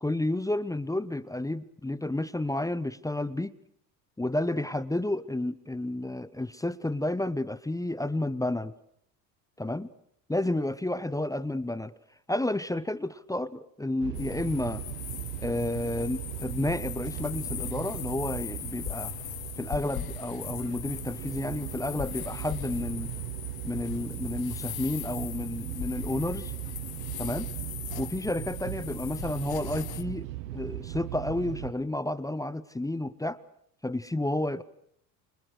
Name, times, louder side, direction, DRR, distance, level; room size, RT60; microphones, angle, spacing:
voice 1, 0.0-3.5 4.2-8.7 9.6-9.9 10.3-11.9 12.3-14.8 15.4-19.1 19.6-23.1 23.6-26.5 27.2-27.5 28.0-33.4 33.8-34.6, left 1 dB, 5° left, 17 dB, 1.0 m, -31 dB
sound 1, 14.0-31.7, right 15 dB, 75° right, 1.1 m, -38 dB
sound 2, 14.1-30.0, left 14 dB, 45° left, 1.5 m, -40 dB
29.0 x 27.5 x 6.6 m, 0.70 s
hypercardioid pair, 65°, 49 cm